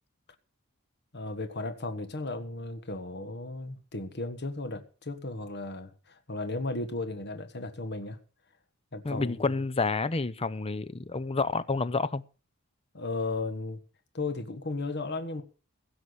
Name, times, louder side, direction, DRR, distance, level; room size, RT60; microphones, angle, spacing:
voice 1, 1.1-8.2 8.9-9.3 12.9-13.8 14.1-15.4, left 2 dB, 55° left, 1.5 m, -35 dB
voice 2, 9.0-12.2, left 3 dB, 25° left, 0.7 m, -29 dB
16.5 x 6.1 x 8.0 m
head